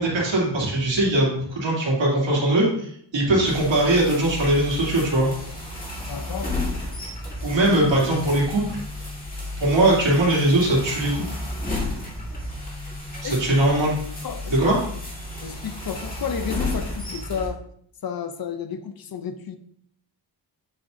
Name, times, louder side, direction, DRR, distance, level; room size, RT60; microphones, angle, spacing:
voice 1, 0.0-5.3 7.4-8.8 9.6-11.4 13.2-14.0 14.5-14.8, right 1 dB, 75° right, -4 dB, 2.7 m, -21 dB
sound 1, 3.5-17.5, left 2 dB, 20° left, 1.9 m, -32 dB
voice 2, 6.1-6.5 13.2-13.4 14.2-14.6 15.4-17.6 18.0-19.6, left 7 dB, 50° left, 9 dB, 0.6 m, -31 dB
8.3 x 6.1 x 2.7 m, 0.66 s
wide cardioid pair, 170°, 45 cm